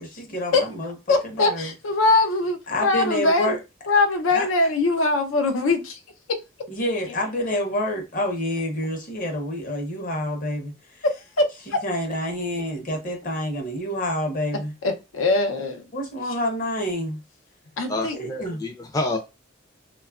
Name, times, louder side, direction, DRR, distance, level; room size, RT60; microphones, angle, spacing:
voice 1, 0.0-0.9 1.2-1.7 2.7-3.6 4.3-4.5 6.7-11.0 11.7-14.7 15.9-17.2 18.1-18.6, left 1 dB, 45° left, 0.8 m, -28 dB
voice 2, 1.1-3.6 3.9-6.0 6.3-6.4 11.4-11.8 14.8-15.8 17.8-18.2, left 3 dB, 90° left, 0.5 m, -22 dB
voice 3, 17.9-19.2, left 2 dB, 20° left, 0.4 m, -28 dB
2.9 x 2.3 x 2.3 m
head